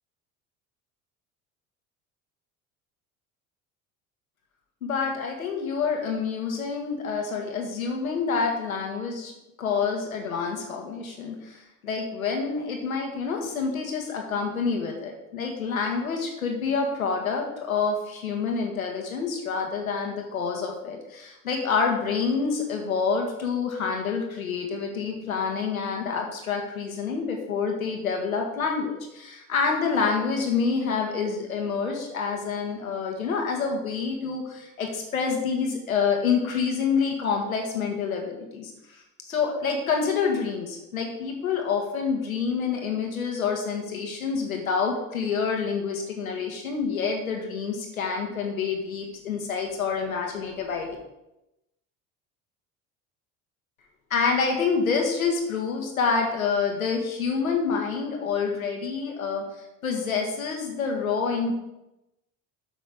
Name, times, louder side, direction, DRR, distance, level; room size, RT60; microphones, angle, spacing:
voice 1, 4.8-9.3 9.6-51.0 54.1-59.4 59.8-61.5, left 5 dB, 90° left, 2 dB, 1.6 m, -27 dB
8.9 x 5.6 x 5.0 m, 0.92 s
hypercardioid pair, 65°, 41 cm